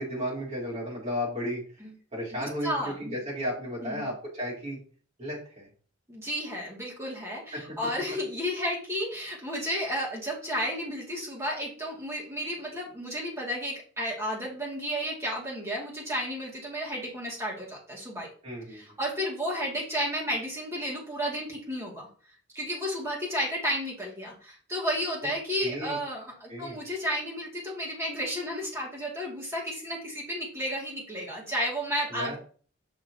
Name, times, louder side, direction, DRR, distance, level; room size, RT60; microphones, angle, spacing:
voice 1, 0.0-1.6 2.1-4.8 5.2-5.7 7.5-7.6 18.4-18.8 25.6-26.0 26.5-26.8 32.1-32.4, equal, 35° right, -5 dB, 3.4 m, -33 dB
voice 2, 2.4-3.2 3.8-4.1 6.1-18.3 18.7-21.9 22.5-32.4, equal, 15° right, -3 dB, 2.2 m, -32 dB
6.5 x 5.8 x 2.8 m, 0.42 s
head